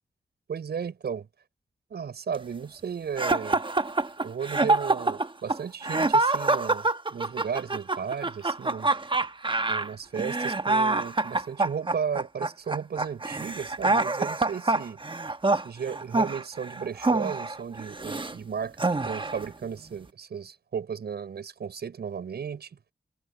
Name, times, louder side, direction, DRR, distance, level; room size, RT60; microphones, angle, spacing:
voice 1, 0.5-1.3 1.9-3.6 4.2-8.9 9.7-15.0 15.5-22.8, right 7 dB, 80° right, 6.4 m, -34 dB
sound 1, 3.2-18.3 18.8-19.5, right 3 dB, 30° right, 1.2 m, -26 dB
cardioid pair, 40°, 17 cm